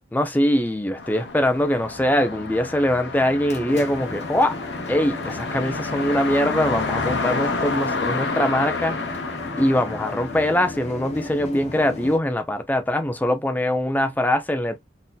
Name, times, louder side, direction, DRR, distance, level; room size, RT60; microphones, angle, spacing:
voice 1, 0.1-4.6 4.9-9.0 9.6-14.8, left 1 dB, 10° left, 0.4 m, -22 dB
sound 1, 0.9-11.2, left 3 dB, 70° left, 0.7 m, -30 dB
sound 2, 3.3-12.2, left 2 dB, 35° left, 0.8 m, -35 dB
4.0 x 2.7 x 2.3 m
head